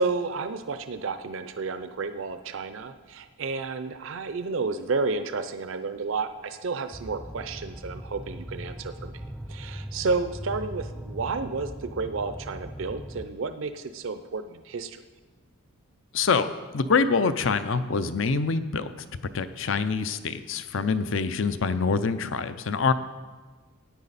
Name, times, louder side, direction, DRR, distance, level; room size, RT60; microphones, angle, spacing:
voice 1, 0.0-9.1 9.5-15.0, right 4 dB, 65° right, 10 dB, 0.5 m, -31 dB
sound 1, 6.9-13.3, equal, ahead, 0.4 m, -39 dB
voice 2, 16.1-16.5 16.7-18.9 19.3-22.9, left 5 dB, 60° left, 12 dB, 0.5 m, -25 dB
14.0 x 9.5 x 4.1 m, 1.3 s
head